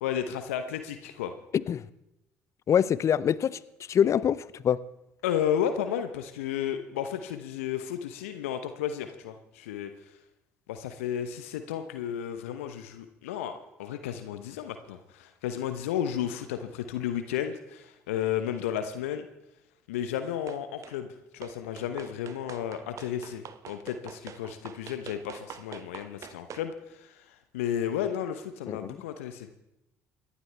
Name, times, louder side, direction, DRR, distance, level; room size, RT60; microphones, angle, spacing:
voice 1, 0.0-1.3 5.2-9.9 10.7-19.3 19.9-21.1 21.3-27.3 27.5-29.5, left 9 dB, 75° left, 9 dB, 0.9 m, -33 dB
voice 2, 2.7-3.6 3.9-4.8 28.7-29.0, left 8 dB, 45° left, 19 dB, 0.6 m, -25 dB
sound 1, 20.5-21.0 21.4-26.7, right 8 dB, 45° right, 0.9 m, -45 dB
27.5 x 11.5 x 3.4 m, 0.89 s
figure-of-eight pair, 55°, 7 cm